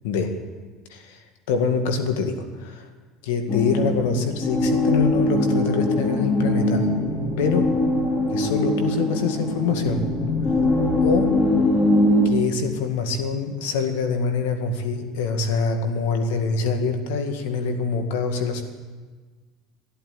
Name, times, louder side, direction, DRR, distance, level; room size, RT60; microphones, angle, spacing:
voice 1, 0.0-0.4 0.9-1.2 1.5-2.9 3.2-6.9 7.4-7.8 8.3-10.1 11.0-11.4 12.2-18.6, left 5 dB, 85° left, 6 dB, 2.0 m, -25 dB
sound 1, 3.5-12.3, left 1 dB, 30° left, 4.0 m, -22 dB
13.5 x 11.5 x 9.1 m, 1.4 s
supercardioid pair, 110°, 0 cm